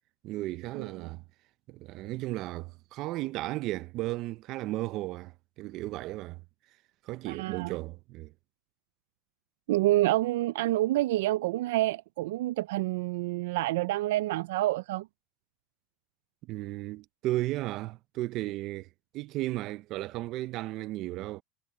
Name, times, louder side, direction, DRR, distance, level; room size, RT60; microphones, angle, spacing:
voice 1, 0.2-1.2 1.7-6.4 7.0-8.3 16.4-18.9 19.1-21.4, right 17 dB, 55° right, 0.7 m, -35 dB
voice 2, 0.8-1.1 7.3-7.8 9.7-15.1, right 16 dB, 90° right, 0.3 m, -28 dB
supercardioid pair, 125°, 0 cm